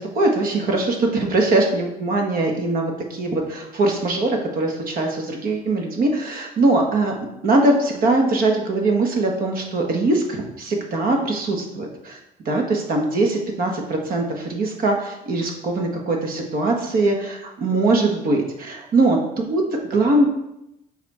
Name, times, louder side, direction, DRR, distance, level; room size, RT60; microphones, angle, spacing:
voice 1, 0.0-7.1 7.4-12.2 12.4-20.3, right 2 dB, 60° right, 1 dB, 1.5 m, -21 dB
7.1 x 4.2 x 4.4 m, 0.86 s
cardioid pair, 110°, 17 cm